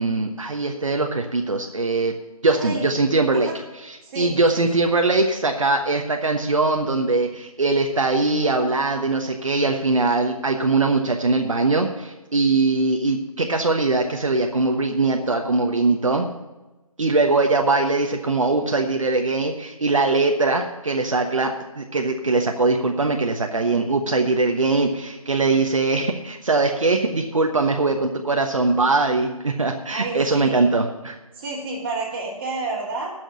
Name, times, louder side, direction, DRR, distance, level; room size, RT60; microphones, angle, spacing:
voice 1, 0.0-2.1 2.4-3.5 3.8-16.3 17.0-31.1, right 3 dB, 60° right, 3 dB, 1.1 m, -21 dB
voice 2, 2.5-2.9 3.3-3.6 4.0-4.6 29.9-30.7 31.4-33.1, right 2 dB, 20° right, -5 dB, 2.9 m, -30 dB
16.0 x 6.3 x 5.6 m, 1.1 s
figure-of-eight pair, 155°, 19 cm